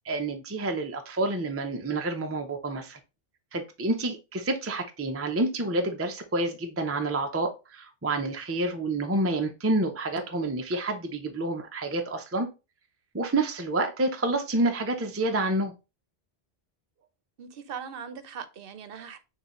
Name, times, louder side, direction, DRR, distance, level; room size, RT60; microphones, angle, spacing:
voice 1, 0.0-3.0 3.5-12.5 13.1-15.7, right 2 dB, 20° right, 0.5 m, -28 dB
voice 2, 17.4-19.2, right 7 dB, 65° right, 0.8 m, -40 dB
6.6 x 2.7 x 2.9 m
omnidirectional pair, 1.1 m